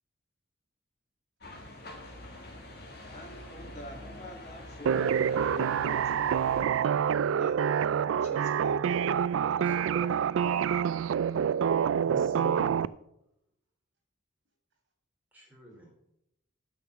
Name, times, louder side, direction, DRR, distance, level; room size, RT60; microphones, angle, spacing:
sound 1, 1.4-6.6, left 1 dB, 50° left, 2.1 m, -46 dB
voice 1, 3.1-6.5 6.8-7.6 8.2-9.0 9.6-9.8, left 1 dB, 35° left, 1 dB, 2.0 m, -47 dB
sound 2, 4.9-12.9, right 8 dB, 85° right, 0.3 m, -27 dB
voice 2, 9.4-11.1 15.3-15.9, right 3 dB, 10° right, -2 dB, 3.0 m, -48 dB
voice 3, 12.0-12.9, right 1 dB, 60° right, 1 dB, 3.3 m, -43 dB
9.7 x 5.9 x 7.1 m, 0.83 s
head